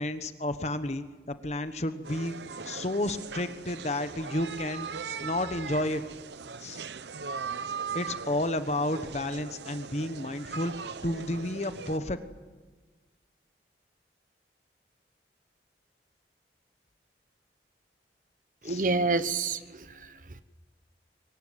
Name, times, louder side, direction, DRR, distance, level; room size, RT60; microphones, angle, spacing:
voice 1, 0.0-2.4 2.6-4.9 5.2-6.0 6.6-6.8 7.9-12.2 18.6-18.8, left 1 dB, 40° left, 10 dB, 1.1 m, -31 dB
sound 1, 2.0-12.0, right 5 dB, 80° right, 0.8 m, -39 dB
voice 2, 18.6-20.4, right 3 dB, 50° right, 13 dB, 1.1 m, -29 dB
24.0 x 20.5 x 9.3 m, 1.3 s
head